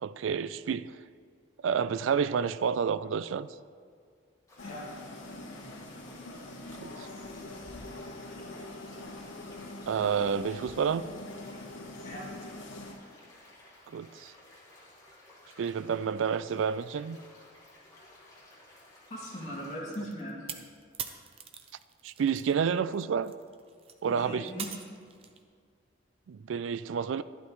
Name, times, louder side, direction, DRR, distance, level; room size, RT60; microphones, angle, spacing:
voice 1, 0.0-1.0 1.6-3.5 6.8-7.1 9.9-11.1 13.9-14.3 15.6-17.2 22.0-23.3 24.0-24.5 26.3-27.2, right 7 dB, 85° right, 0.3 m, -29 dB
sound 1, 4.5-19.7, left 1 dB, 15° left, 2.2 m, -56 dB
sound 2, 4.6-12.9, left 2 dB, 80° left, 1.2 m, -44 dB
voice 2, 19.1-20.4 24.1-24.8, equal, 40° left, 2.6 m, -39 dB
sound 3, 19.9-22.5 22.9-25.4, right 7 dB, 30° right, 0.6 m, -42 dB
12.5 x 11.5 x 3.1 m
head